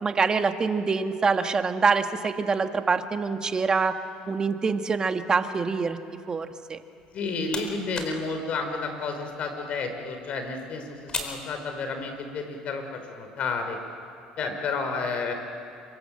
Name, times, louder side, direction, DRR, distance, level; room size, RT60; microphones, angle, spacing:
voice 1, 0.0-4.0 4.3-6.0 6.3-6.8, right 4 dB, 30° right, 7 dB, 1.6 m, -25 dB
sound 1, 7.0-12.3, left 3 dB, 30° left, 4.6 m, -40 dB
voice 2, 7.1-13.8 14.4-15.3, left 4 dB, 55° left, 6 dB, 5.0 m, -31 dB
26.5 x 25.0 x 7.7 m, 2.5 s
supercardioid pair, 95°, 3 cm